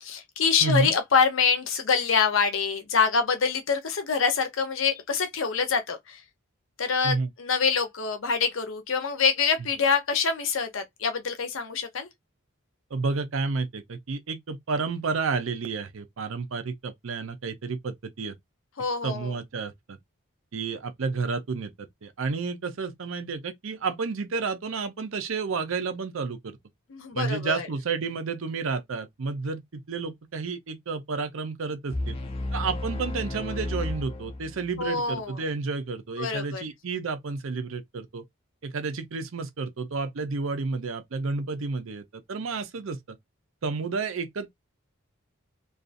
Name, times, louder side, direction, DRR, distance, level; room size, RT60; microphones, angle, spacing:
voice 1, 0.0-6.2 6.8-12.1 18.8-19.4 26.9-27.7 34.8-35.4 36.2-36.6, left 5 dB, 70° left, 0.7 m, -25 dB
voice 2, 0.6-0.9 7.0-7.3 12.9-18.4 19.0-20.0 20.5-26.6 27.1-32.2 32.5-38.2 38.6-43.2 43.6-44.5, right 4 dB, 70° right, 0.6 m, -31 dB
sound 1, 31.9-34.9, left 2 dB, 25° left, 0.4 m, -32 dB
2.6 x 2.4 x 2.5 m
head